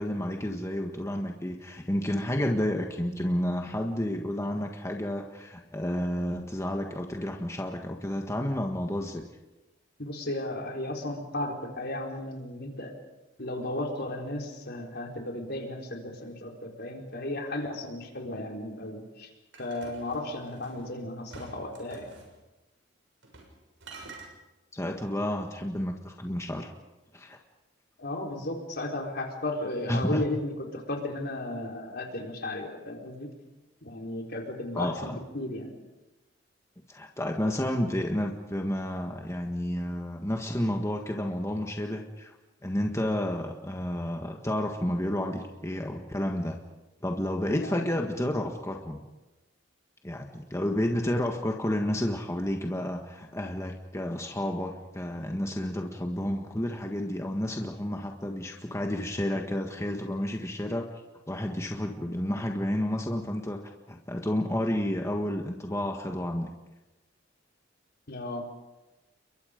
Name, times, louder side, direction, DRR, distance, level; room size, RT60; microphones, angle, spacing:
voice 1, 0.0-9.2 24.7-26.7 27.1-27.4 29.9-30.2 34.7-35.2 36.9-42.3 42.6-46.6 47.0-49.0 50.0-60.9 61.3-63.6 63.9-66.5, left 1 dB, 15° left, 2 dB, 1.6 m, -31 dB
voice 2, 10.0-12.9 13.4-19.3 19.6-22.1 28.0-33.3 33.8-35.7 47.5-47.8 68.1-68.5, left 1 dB, 60° left, 1 dB, 4.3 m, -35 dB
sound 1, 19.5-20.8 21.3-22.3 23.2-23.5 23.8-24.3, right 3 dB, 90° right, 6.8 m, -47 dB
30.0 x 23.0 x 5.2 m, 1.1 s
head